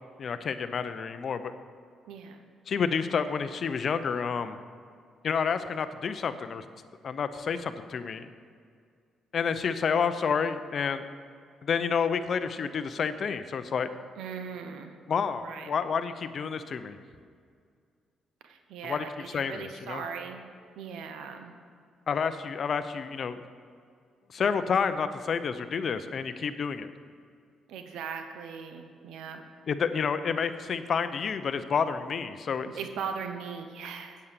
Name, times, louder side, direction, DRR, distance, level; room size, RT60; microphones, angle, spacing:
voice 1, 0.2-1.5 2.7-4.6 5.2-6.7 7.0-8.3 9.3-11.0 11.6-13.9 15.1-17.0 18.8-20.0 22.1-23.4 24.3-26.9 29.7-32.7, left 6 dB, 50° left, 11 dB, 0.6 m, -29 dB
voice 2, 2.1-2.4 14.2-14.9 15.4-15.7 18.4-20.4 20.8-21.5 27.7-29.4 32.6-34.2, right 6 dB, 85° right, 6 dB, 0.9 m, -39 dB
8.5 x 8.0 x 6.8 m, 2.1 s
cardioid pair, 90°, 0 cm